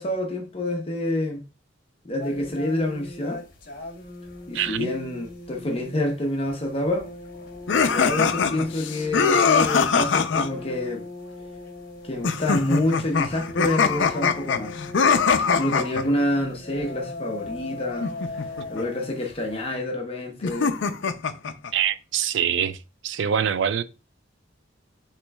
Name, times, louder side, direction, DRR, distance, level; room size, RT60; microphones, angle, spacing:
voice 1, 0.0-1.4 2.0-3.4 4.5-7.1 7.9-11.1 12.0-14.8 15.5-18.1 18.7-20.8, left 1 dB, 30° left, 0.7 m, -27 dB
sound 1, 2.2-19.7, left 2 dB, 50° left, 1.0 m, -40 dB
voice 2, 4.5-4.9 21.7-22.8 23.0-23.8, right 8 dB, 70° right, 0.4 m, -24 dB
sound 2, 7.7-10.5 12.2-16.0 18.0-18.8 20.4-21.7, left 5 dB, 70° left, 0.5 m, -22 dB
6.0 x 3.1 x 2.2 m
head